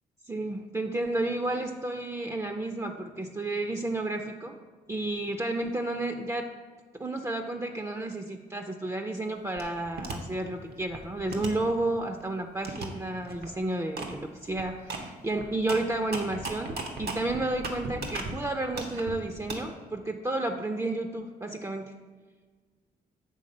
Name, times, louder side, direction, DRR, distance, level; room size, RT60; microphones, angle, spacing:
voice 1, 0.3-4.6 4.9-6.5 6.9-21.9, right 2 dB, 20° right, 4 dB, 0.5 m, -31 dB
sound 1, 9.6-10.2 10.7-12.2 12.6-12.9 13.2-13.5 14.0-14.1 14.4-18.3 18.7-19.6, right 3 dB, 75° right, 1.0 m, -37 dB
7.8 x 3.4 x 5.3 m, 1.4 s
cardioid pair, 70°, 17 cm